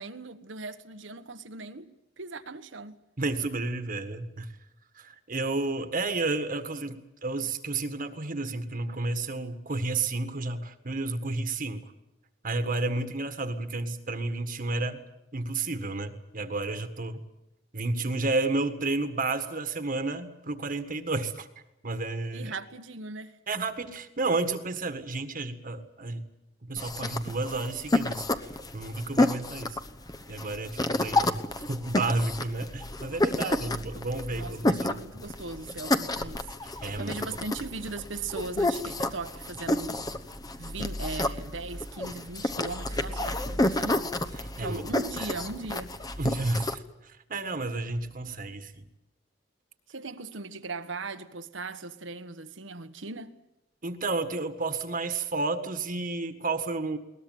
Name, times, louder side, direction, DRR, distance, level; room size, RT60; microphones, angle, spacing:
voice 1, 0.0-3.0 22.3-23.4 33.4-33.6 34.3-36.5 36.7-40.1 40.6-44.1 44.6-46.0 49.9-53.4, right 3 dB, 80° right, 1.4 m, -39 dB
voice 2, 3.2-4.6 5.0-11.9 12.4-15.0 15.3-17.2 17.7-21.5 21.8-22.5 23.5-26.3 26.6-29.8 30.3-31.4 31.7-34.8 36.6-37.1 44.4-44.8 45.2-45.3 46.2-48.9 53.8-57.0, right 3 dB, 45° right, 1.7 m, -31 dB
sound 1, 26.8-46.7, left 2 dB, 20° left, 1.0 m, -30 dB
21.0 x 19.5 x 9.4 m
head